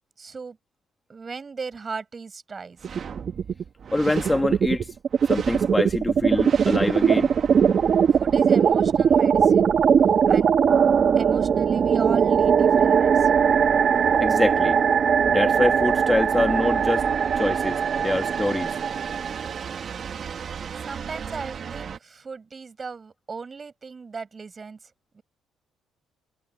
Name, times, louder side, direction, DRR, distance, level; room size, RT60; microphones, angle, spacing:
voice 1, 0.2-0.6 1.1-2.8 8.1-9.7 10.3-10.5 11.2-13.5 20.8-25.2, right 5 dB, 35° right, 6.8 m, -37 dB
sound 1, 2.8-3.6 3.9-22.0, right 7 dB, 50° right, 1.9 m, -21 dB
voice 2, 3.9-4.9 5.3-7.3 14.2-14.8 15.3-17.0 17.3-18.7, left 2 dB, 15° left, 1.5 m, -25 dB
supercardioid pair, 80°, 0 cm